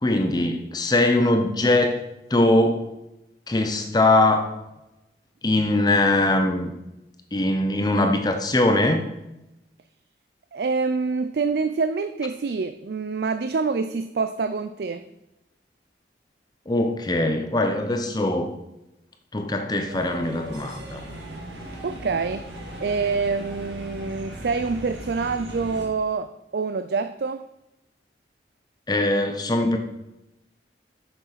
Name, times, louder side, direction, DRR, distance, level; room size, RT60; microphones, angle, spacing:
voice 1, 0.0-2.0 2.3-2.9 3.5-4.5 5.4-6.7 7.3-9.0 16.7-18.5 19.3-21.0 28.9-29.8, left 2 dB, 25° left, 5 dB, 0.7 m, -21 dB
voice 2, 10.5-15.0 21.8-22.5 22.8-27.4, right 4 dB, 60° right, 10 dB, 0.4 m, -26 dB
sound 1, 19.9-25.9, right 1 dB, 90° right, 1.9 m, -38 dB
7.0 x 6.2 x 5.7 m, 0.93 s
head